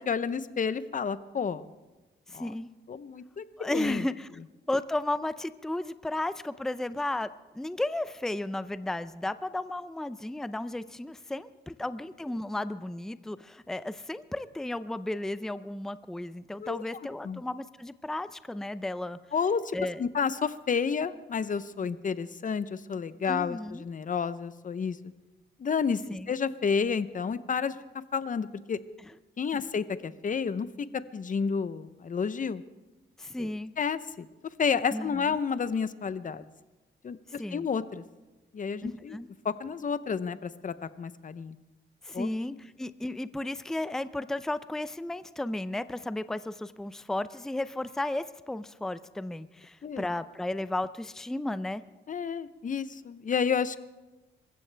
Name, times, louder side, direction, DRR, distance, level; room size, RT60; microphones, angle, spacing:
voice 1, 0.1-1.6 2.3-2.5 2.9-4.0 16.6-16.8 17.2-17.4 19.3-25.0 25.6-26.0 26.3-27.7 28.1-28.8 29.4-30.9 31.1-32.6 33.4-33.5 33.8-34.3 34.6-36.5 37.0-38.0 38.5-41.6 42.1-42.3 49.8-50.0 52.1-53.8, left 6 dB, 40° left, 14 dB, 0.7 m, -30 dB
voice 2, 2.3-2.7 3.6-4.3 4.7-7.3 7.5-19.2 19.7-20.0 23.3-23.8 26.1-26.3 33.2-33.7 34.9-35.3 37.4-37.7 38.8-39.3 42.0-51.8, left 1 dB, ahead, 14 dB, 0.5 m, -34 dB
25.5 x 15.0 x 3.4 m, 1.1 s
cardioid pair, 105°, 20 cm